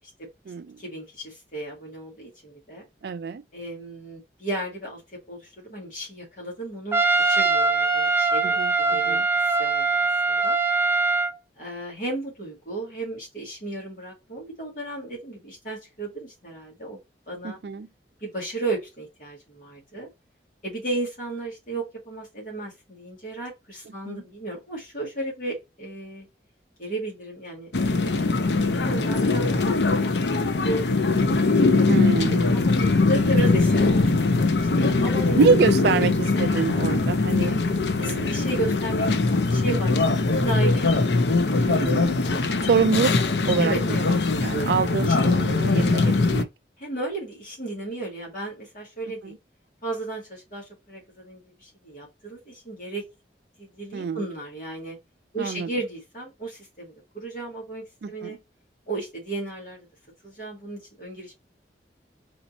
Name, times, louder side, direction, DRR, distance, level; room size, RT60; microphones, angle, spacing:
voice 1, 0.8-2.8 3.5-5.0 5.3-7.0 7.3-9.2 9.5-10.6 11.6-17.0 17.3-17.6 18.2-20.1 20.6-26.3 26.8-29.8 30.6-30.8 31.1-31.4 31.6-31.9 32.2-34.3 34.5-35.6 37.9-40.9 41.4-41.6 42.1-42.3 43.6-44.1 44.4-44.5 45.1-45.3 46.8-49.4 49.8-53.0 53.6-55.0 55.3-58.4 58.9-59.9 60.2-61.3, right 2 dB, 50° left, 2.2 m, -34 dB
voice 2, 3.0-3.4 8.4-8.7 9.1-9.2 17.4-17.9 24.1-24.2 31.9-32.6 35.4-37.6 38.0-38.4 41.7-42.2 42.6-43.1 43.4-43.7 44.4-46.5 49.2-49.3 53.9-54.2 55.4-55.7 58.0-58.4, right 5 dB, 65° right, 0.3 m, -25 dB
Trumpet, 6.9-11.3, right 3 dB, 15° right, 0.6 m, -22 dB
sound 1, 27.7-46.4, left 3 dB, 70° left, 0.6 m, -21 dB
4.2 x 2.9 x 4.0 m
head